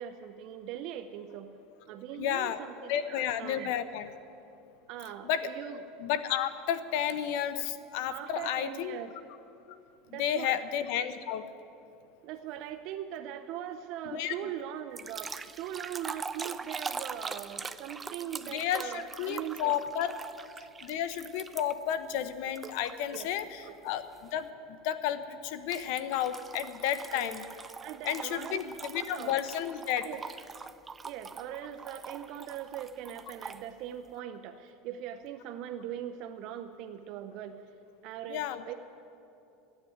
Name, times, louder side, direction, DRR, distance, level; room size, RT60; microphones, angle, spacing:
voice 1, 0.0-1.5 1.9-3.8 4.9-5.8 8.1-9.1 10.1-10.6 12.2-19.7 20.1-20.3 23.1-23.3 23.6-23.8 27.1-27.4 27.8-29.3 30.0-30.2 31.0-37.6 38.0-38.7, right 10 dB, 55° right, 8 dB, 0.6 m, -41 dB
voice 2, 2.2-2.6 2.9-4.1 5.2-5.5 6.0-9.0 10.1-11.4 14.0-14.3 18.5-20.1 20.8-27.4 28.0-30.1 38.3-38.6, left 10 dB, 65° left, 12 dB, 0.8 m, -32 dB
sound 1, 15.0-21.9 22.6-23.4 23.9-24.2 25.7-33.6, right 5 dB, 15° right, 0.4 m, -43 dB
14.0 x 9.5 x 9.3 m, 2.8 s
supercardioid pair, 135°, 0 cm